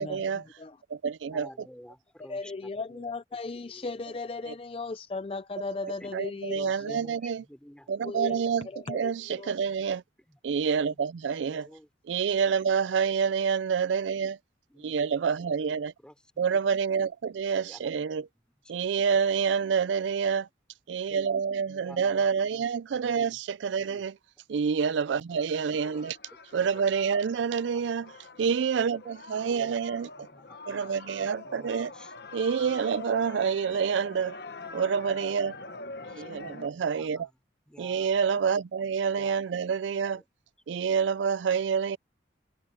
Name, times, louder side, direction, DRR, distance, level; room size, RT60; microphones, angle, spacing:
voice 1, 0.0-0.4 0.9-1.5 4.5-4.6 5.8-7.4 7.9-10.0 10.4-11.7 12.1-14.4 14.8-15.9 16.4-18.2 18.7-20.5 20.9-24.1 24.5-26.2 26.5-28.1 28.4-30.3 30.7-31.9 32.3-34.4 34.7-35.5 36.1-37.3 37.8-40.2 40.7-42.0, right 6 dB, 80° right, 0.4 m, -28 dB
voice 2, 1.3-3.1 3.5-3.9 5.9-6.2 6.5-7.9 8.5-8.7 10.3-11.9 14.7-15.1 15.4-16.6 17.5-18.0 18.8-19.2 21.1-21.2 21.7-22.7 23.0-23.4 23.8-24.1 25.8-26.0 26.5-26.8 27.4-27.9 29.5-29.9 30.2-30.9 31.1-32.1 32.5-32.7 33.5-33.6 36.0-37.2 37.7-38.1 39.2-39.5 40.1-40.3, equal, 5° left, 3.9 m, -52 dB
voice 3, 2.3-7.0 8.0-9.5, left 3 dB, 30° left, 0.4 m, -37 dB
sound 1, 25.3-36.7, left 3 dB, 60° left, 1.3 m, -45 dB
head